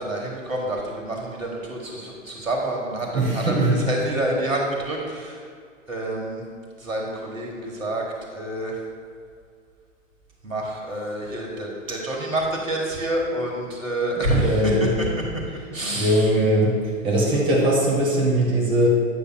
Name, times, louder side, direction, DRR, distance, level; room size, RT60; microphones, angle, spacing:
voice 1, 0.0-5.4 5.9-6.4 6.8-8.0 8.3-8.8 10.4-15.1 15.3-15.4 15.7-16.3, right 1 dB, 75° right, -1 dB, 1.5 m, -27 dB
voice 2, 3.1-3.8 14.4-14.9 15.9-16.7 17.0-18.9, right 1 dB, 15° right, -5 dB, 1.3 m, -20 dB
8.9 x 6.8 x 2.3 m, 2.1 s
figure-of-eight pair, 115°, 40 cm